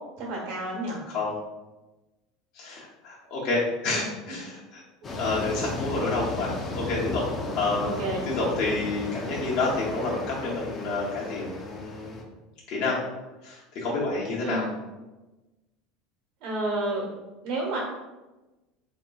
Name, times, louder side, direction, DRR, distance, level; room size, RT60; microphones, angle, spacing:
voice 1, 0.2-1.0 3.9-4.0 7.8-8.2 14.4-14.7 16.4-17.1 17.4-17.8, right 2 dB, 65° right, -3 dB, 1.2 m, -30 dB
voice 2, 2.5-4.8 5.2-12.2 12.7-13.0 13.4-14.7, left 3 dB, 55° left, -5 dB, 0.8 m, -29 dB
sound 1, 5.0-12.2, left 2 dB, 30° left, 0.5 m, -35 dB
3.6 x 2.9 x 2.3 m, 1.1 s
supercardioid pair, 135°, 0 cm